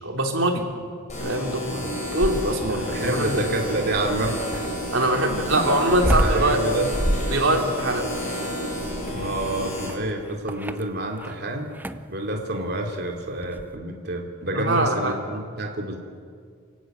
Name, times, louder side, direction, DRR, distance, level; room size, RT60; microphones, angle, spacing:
voice 1, 0.0-0.6 1.2-1.6 2.1-3.5 4.9-6.8 7.3-8.1 14.5-15.1, right 1 dB, 85° right, 2 dB, 3.5 m, -23 dB
sound 1, 1.1-9.9, left 1 dB, 40° left, 7.7 m, -31 dB
sound 2, 1.9-2.8 4.5-11.4 11.7-12.1 13.4-13.7, equal, 10° right, 0.7 m, -28 dB
voice 2, 2.7-4.6 5.5-5.7 6.0-6.9 9.1-11.7 12.1-16.0, right 1 dB, 55° right, 2 dB, 3.2 m, -28 dB
28.0 x 16.5 x 9.4 m, 2.1 s
head